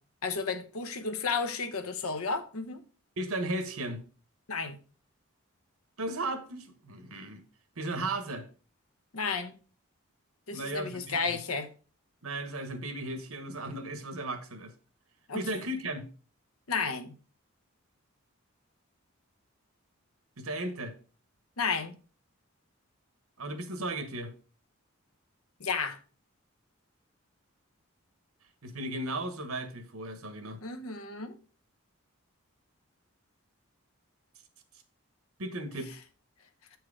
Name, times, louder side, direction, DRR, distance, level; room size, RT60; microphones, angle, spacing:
voice 1, 0.2-2.8 4.5-4.8 9.1-9.6 10.5-11.7 15.3-15.5 16.7-17.1 21.6-22.0 25.6-26.0 30.6-31.4, left 4 dB, 90° left, 1.0 m, -32 dB
voice 2, 3.2-4.0 6.0-7.4 7.8-8.5 10.5-11.2 12.2-14.7 15.3-16.0 20.4-20.9 23.4-24.3 28.6-30.6 35.4-36.0, right 2 dB, 90° right, 1.3 m, -35 dB
7.9 x 4.7 x 4.8 m
head